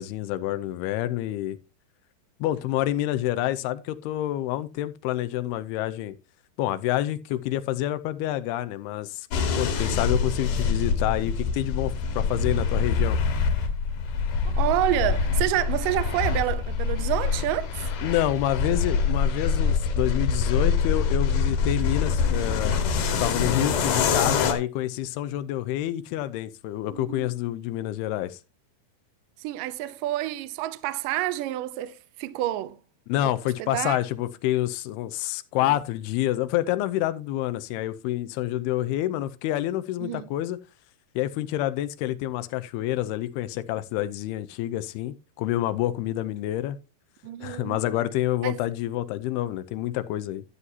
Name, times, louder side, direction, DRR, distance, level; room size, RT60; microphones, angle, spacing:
voice 1, 0.0-1.6 2.4-6.2 6.6-9.3 9.6-13.2 18.0-22.8 23.2-28.4 33.1-40.6 41.2-46.8 47.4-50.4, left 14 dB, 85° left, 2.7 m, -28 dB
sound 1, 9.3-24.5, left 5 dB, 60° left, 2.7 m, -25 dB
voice 2, 14.5-17.9 26.9-27.3 29.4-32.8 33.2-33.3 33.6-34.0 35.6-35.8 40.0-40.3 47.2-47.8 48.4-48.6, right 14 dB, 75° right, 2.1 m, -28 dB
12.5 x 9.6 x 2.7 m
omnidirectional pair, 4.5 m